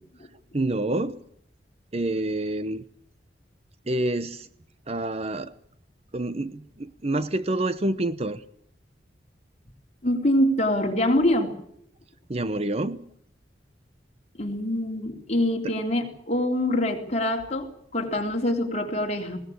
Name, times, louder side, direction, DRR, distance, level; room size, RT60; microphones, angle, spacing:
voice 1, 0.5-1.2 1.9-2.8 3.9-4.5 4.9-5.5 6.1-8.4 12.3-13.1, right 2 dB, 35° right, 0.8 m, -27 dB
voice 2, 10.0-11.5 14.4-17.7 17.9-19.4, left 1 dB, 35° left, 3.7 m, -24 dB
20.5 x 18.0 x 8.7 m
head